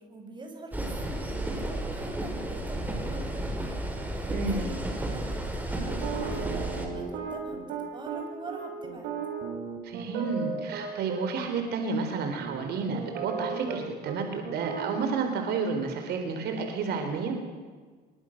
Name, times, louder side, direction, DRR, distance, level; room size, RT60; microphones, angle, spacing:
voice 1, 0.0-9.1, right 2 dB, 25° right, 3 dB, 6.3 m, -44 dB
sound 1, 0.7-6.9, right 1 dB, 10° right, 5.4 m, -32 dB
voice 2, 4.3-4.6 9.8-17.4, right 4 dB, 75° right, 5 dB, 4.2 m, -31 dB
sound 2, 5.9-11.2 11.7-11.9 12.4-13.8 14.0-14.2 14.4-15.0, right 6 dB, 90° right, 7.0 m, -35 dB
26.0 x 23.5 x 6.7 m, 1.5 s
cardioid pair, 110°, 17 cm